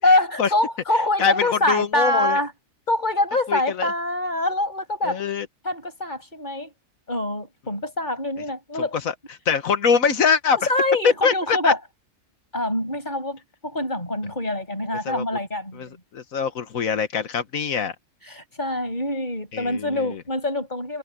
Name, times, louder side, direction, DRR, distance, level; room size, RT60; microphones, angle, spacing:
voice 1, 0.0-2.5 2.9-5.2 5.6-6.7 7.1-9.0 10.7-11.8 12.5-15.9 18.3-21.0, left 1 dB, 35° left, 6.7 m, -24 dB
voice 2, 1.2-2.4 3.5-3.9 5.0-5.5 8.8-10.6 11.0-11.7 15.0-15.2 15.7-17.9 19.5-20.2, left 6 dB, 85° left, 1.8 m, -23 dB
omnidirectional pair, 1.4 m